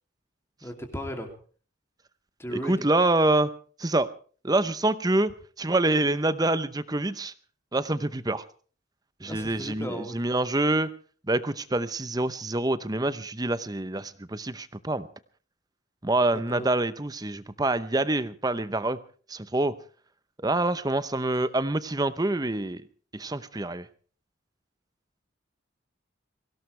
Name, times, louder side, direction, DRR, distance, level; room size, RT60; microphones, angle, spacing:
voice 1, 0.6-1.3 2.4-2.9 9.2-10.4 16.3-16.7, equal, 15° left, 4 dB, 2.7 m, -36 dB
voice 2, 2.5-3.5 3.8-4.1 4.4-7.3 7.7-8.4 9.2-10.9 11.3-15.1 16.0-19.0 19.3-19.7 20.4-22.9 23.1-23.9, right 2 dB, 20° right, 14 dB, 0.7 m, -26 dB
23.5 x 17.5 x 3.3 m, 0.41 s
head